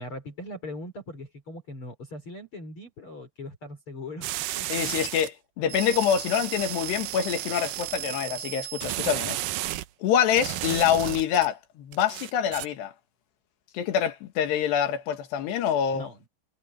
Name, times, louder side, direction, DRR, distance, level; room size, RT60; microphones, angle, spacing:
voice 1, 0.0-4.3 4.6-4.9 15.9-16.3, left 1 dB, 30° left, 5.4 m, -40 dB
sound 1, 4.2-5.3 5.7-9.9 10.4-11.5 11.9-12.7, right 16 dB, 85° right, 1.9 m, -33 dB
voice 2, 4.7-9.4 10.0-12.9 13.7-16.1, left 9 dB, 75° left, 3.9 m, -26 dB
omnidirectional pair, 4.9 m